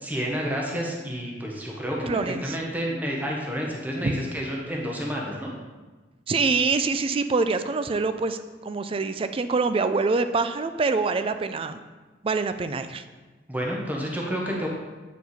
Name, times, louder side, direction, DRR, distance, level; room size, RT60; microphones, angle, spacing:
voice 1, 0.0-5.5 13.5-14.7, equal, 10° right, -2 dB, 1.0 m, -30 dB
voice 2, 2.1-2.6 4.0-4.1 6.3-11.8 12.2-13.0, right 4 dB, 30° right, 10 dB, 0.3 m, -25 dB
8.1 x 4.6 x 4.2 m, 1.3 s
head